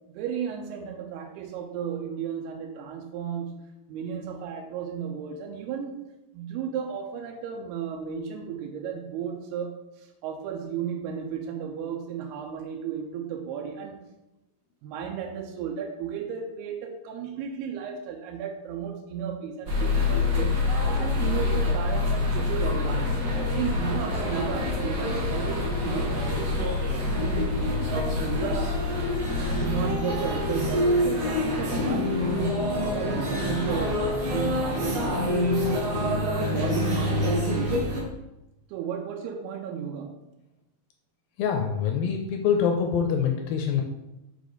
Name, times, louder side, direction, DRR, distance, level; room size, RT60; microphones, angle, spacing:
voice 1, 0.1-3.5 3.9-6.0 6.3-14.0 14.8-20.5 21.0-23.1 23.5-26.2 27.1-27.6 27.9-28.7 29.5-32.2 32.9-35.3 36.0-37.8 38.7-40.1, right 7 dB, 85° right, 1 dB, 2.7 m, -34 dB
sound 1, 19.7-38.0, left 2 dB, 55° right, 1.5 m, -26 dB
voice 2, 41.4-43.8, left 7 dB, 80° left, 3 dB, 2.2 m, -25 dB
6.9 x 4.9 x 3.9 m, 0.95 s
omnidirectional pair, 4.6 m